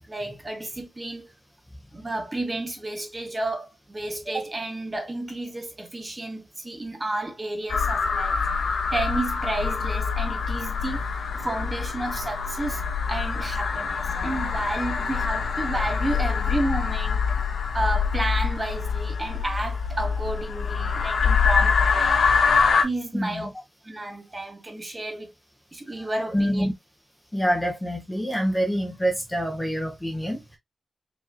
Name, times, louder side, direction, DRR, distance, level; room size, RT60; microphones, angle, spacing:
voice 1, 0.1-1.3 1.9-8.4 8.9-11.0 11.3-12.8 13.1-17.2 17.7-22.2 22.8-23.5 23.8-25.3 25.7-26.7, right 2 dB, 20° right, 1.2 m, -31 dB
sound 1, 7.7-22.8, left 5 dB, 90° left, 0.9 m, -25 dB
voice 2, 23.1-23.5 25.9-26.1 26.3-26.7 27.3-30.6, equal, 10° left, 0.8 m, -26 dB
4.9 x 2.9 x 2.4 m
wide cardioid pair, 180°, 0 cm